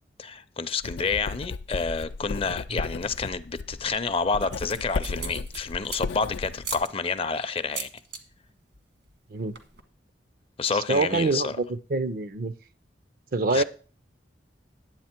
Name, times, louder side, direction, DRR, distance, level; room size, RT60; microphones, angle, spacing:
voice 1, 0.2-7.9 10.6-11.6 13.5-13.6, left 4 dB, 30° left, 0.5 m, -29 dB
Writing, 0.8-6.8, left 4 dB, 85° left, 0.4 m, -35 dB
sound 1, 3.5-4.0 4.4-6.2 6.6-6.9 7.6-8.2 8.5-8.8 9.1-9.2 9.4-9.8, right 4 dB, 75° right, 1.6 m, -37 dB
voice 2, 10.7-12.5 13.3-13.6, right 3 dB, 55° right, 0.5 m, -26 dB
10.5 x 8.0 x 4.4 m
head